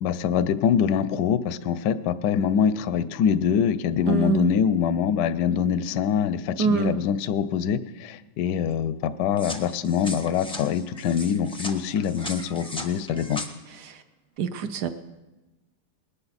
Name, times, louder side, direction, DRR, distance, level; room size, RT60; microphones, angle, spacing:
voice 1, 0.0-13.4, left 8 dB, 70° left, 14 dB, 1.0 m, -24 dB
voice 2, 4.1-4.5 6.6-7.0 13.7-14.0 14.4-14.9, right 6 dB, 70° right, 10 dB, 1.0 m, -25 dB
sound 1, 9.4-13.5, left 1 dB, 10° left, 0.3 m, -38 dB
20.0 x 11.5 x 4.1 m, 1.1 s
omnidirectional pair, 2.3 m